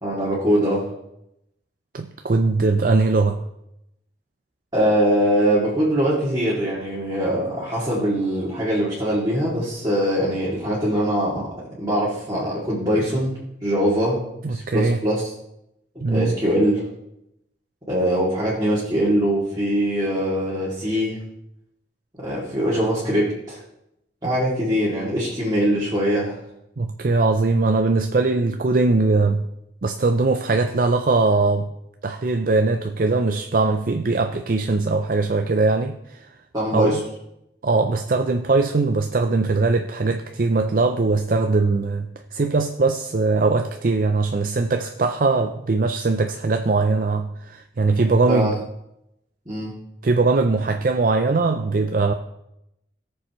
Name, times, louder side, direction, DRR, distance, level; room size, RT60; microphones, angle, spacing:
voice 1, 0.0-0.9 4.7-11.5 11.8-13.3 13.6-14.2 14.5-15.3 16.1-16.8 17.9-21.2 22.2-23.6 24.2-26.4 36.5-37.0 48.3-48.5 49.5-49.7, equal, 20° right, 2.5 m, -22 dB
voice 2, 1.9-3.4 14.4-15.0 16.0-16.4 26.8-29.4 29.8-31.7 32.0-36.3 36.7-37.0 37.6-48.6 50.0-52.1, right 3 dB, 50° right, 0.5 m, -21 dB
17.5 x 7.0 x 3.1 m
head